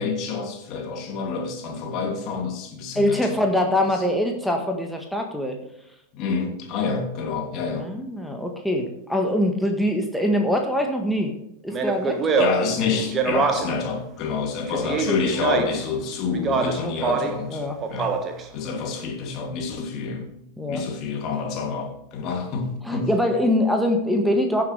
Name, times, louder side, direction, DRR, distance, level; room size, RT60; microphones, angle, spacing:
voice 1, 0.0-3.4 6.1-7.9 12.4-17.6 17.9-18.2 18.5-20.3 20.7-23.1, left 5 dB, 40° left, 2 dB, 3.0 m, -28 dB
voice 2, 3.0-5.6 7.8-11.3 11.6-12.2 16.8-17.8 20.6-20.8 22.8-24.6, left 1 dB, ahead, 2 dB, 1.7 m, -23 dB
Speech, 11.7-13.9 14.7-15.9 16.3-17.4 17.8-18.5, right 4 dB, 25° right, 1.6 m, -24 dB
16.0 x 7.4 x 3.4 m, 0.82 s
figure-of-eight pair, 90°, 0 cm